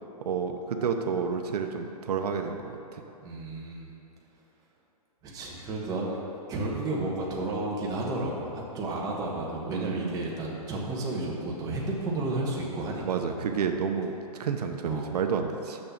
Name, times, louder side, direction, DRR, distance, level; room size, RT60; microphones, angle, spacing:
voice 1, 0.2-3.0 9.7-10.2 13.0-15.8, right 6 dB, 80° right, 5 dB, 0.7 m, -30 dB
voice 2, 3.2-3.9 5.2-6.2 6.5-13.0 13.3-13.4 14.8-15.1, right 2 dB, 20° right, -3 dB, 1.2 m, -32 dB
6.6 x 6.1 x 7.1 m, 2.8 s
hypercardioid pair, 155°, 20 cm